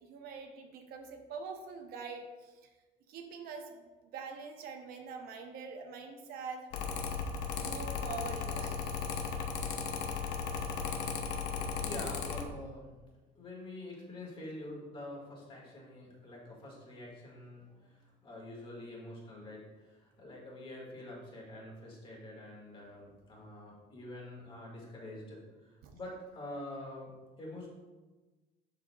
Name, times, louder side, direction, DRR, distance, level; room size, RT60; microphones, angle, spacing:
voice 1, 0.1-2.7 3.1-6.7 7.5-9.0 25.8-25.9, right 5 dB, 65° right, 4 dB, 0.8 m, -44 dB
Mechanical fan, 6.7-12.4, left 6 dB, 80° left, 0.8 m, -36 dB
voice 2, 11.5-12.9 13.3-27.7, left 1 dB, 30° left, -3 dB, 1.8 m, -46 dB
11.5 x 3.8 x 2.3 m, 1.3 s
cardioid pair, 150°, 17 cm